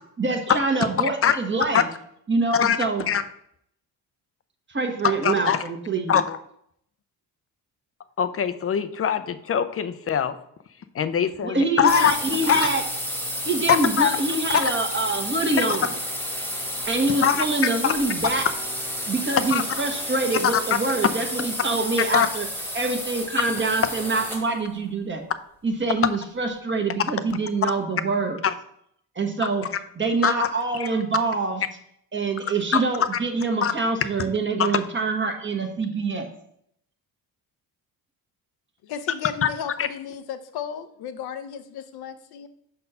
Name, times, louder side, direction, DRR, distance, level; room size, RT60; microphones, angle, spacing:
voice 1, 0.2-1.8 2.3-3.0 4.7-6.2 11.4-12.8 13.4-15.9 16.9-18.5 19.1-22.5 22.7-25.2 25.6-28.4 29.1-29.6 30.0-31.6 32.1-36.3, right 3 dB, 30° right, 4 dB, 1.4 m, -25 dB
voice 2, 1.0-1.4 1.7-1.8 2.5-2.8 3.1-3.2 5.2-5.6 6.1-6.4 8.2-10.4 10.9-12.2 12.5-12.7 13.7-14.1 14.5-14.7 15.6-15.7 17.2-17.9 19.5-19.6 20.5-20.6 22.1-22.3 28.4-28.5 30.2-30.5 30.8-30.9 32.7-32.8 33.6-33.7 34.6-34.7 39.4-39.5 39.8-39.9, left 8 dB, 35° left, 12 dB, 0.6 m, -22 dB
sound 1, 11.9-24.6, equal, 5° left, 1.4 m, -31 dB
voice 3, 38.8-42.5, left 8 dB, 70° left, 10 dB, 0.8 m, -34 dB
5.5 x 4.3 x 5.5 m, 0.70 s
cardioid pair, 85°, 39 cm